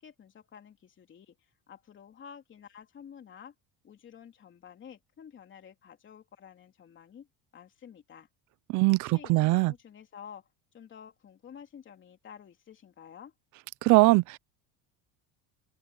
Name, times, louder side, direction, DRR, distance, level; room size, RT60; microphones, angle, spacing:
voice 1, 0.0-1.4 1.7-3.5 3.8-7.3 7.5-8.3 8.9-10.5 10.7-13.3, left 8 dB, 30° left, 3.2 m, -50 dB
voice 2, 8.7-9.7 13.8-14.4, right 23 dB, 50° right, 0.5 m, -22 dB
open air
cardioid pair, 150°, 38 cm